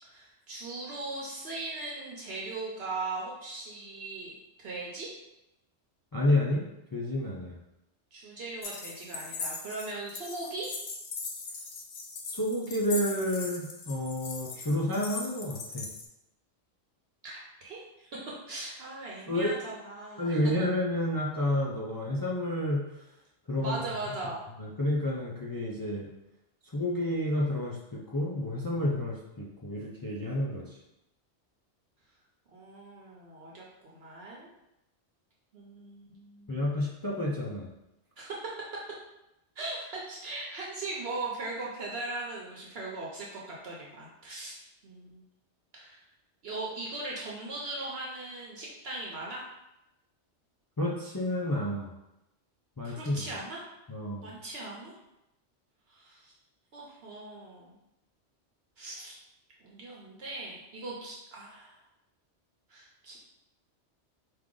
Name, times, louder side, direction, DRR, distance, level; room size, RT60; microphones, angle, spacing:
voice 1, 0.0-5.1 8.1-10.7 17.2-18.1 18.5-20.4 23.6-24.4 32.5-34.5 35.5-36.7 38.2-38.5 39.6-45.2 45.7-46.0 46.4-49.4 52.8-53.7 54.2-54.9 55.9-56.3 56.7-57.8 58.8-59.1 59.6-61.8 62.7-63.2, right 2 dB, 60° right, -3 dB, 0.9 m, -39 dB
voice 2, 6.1-6.6 6.9-7.6 12.3-15.9 19.3-19.5 20.2-22.8 23.5-23.9 24.6-26.1 26.7-30.6 36.5-37.7 50.8-51.9 52.8-53.2 53.9-54.3, left 1 dB, 35° left, -4 dB, 0.3 m, -30 dB
sound 1, 8.6-16.1, left 4 dB, 55° left, 0.7 m, -40 dB
4.7 x 2.5 x 3.7 m, 0.90 s
omnidirectional pair, 1.2 m